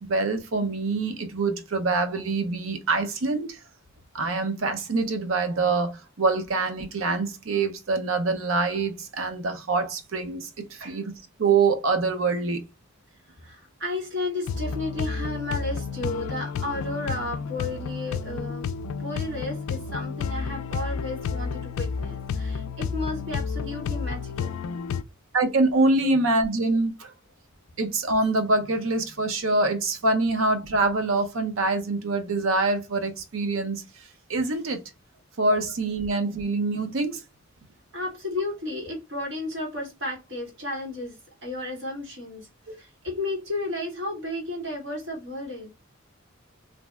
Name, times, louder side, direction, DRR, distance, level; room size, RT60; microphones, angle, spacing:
voice 1, 0.0-3.6 4.1-11.1 11.4-12.6 25.3-27.1 27.8-33.8 34.3-34.8 35.4-37.2 42.7-42.8, right 3 dB, 80° right, 0.6 m, -25 dB
voice 2, 13.4-18.7 19.0-24.5 26.0-26.1 37.9-41.2 41.4-42.5 42.8-45.7, left 2 dB, 60° right, 1.5 m, -33 dB
sound 1, 14.5-25.0, left 5 dB, 90° left, 0.3 m, -31 dB
2.6 x 2.1 x 3.3 m
head